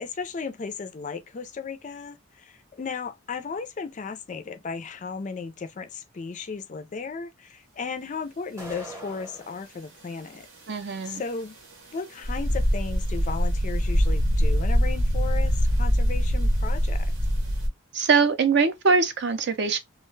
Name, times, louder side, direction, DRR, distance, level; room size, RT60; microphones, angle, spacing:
voice 1, 0.0-10.5 11.0-11.6 11.9-17.1, left 5 dB, 35° left, 0.3 m, -35 dB
sound 1, 8.6-9.6, right 1 dB, 15° right, 0.8 m, -41 dB
voice 2, 10.7-11.2 17.9-19.8, right 5 dB, 50° right, 0.5 m, -22 dB
sound 2, 12.2-17.7, equal, 70° right, 0.9 m, -23 dB
2.3 x 2.2 x 3.1 m
head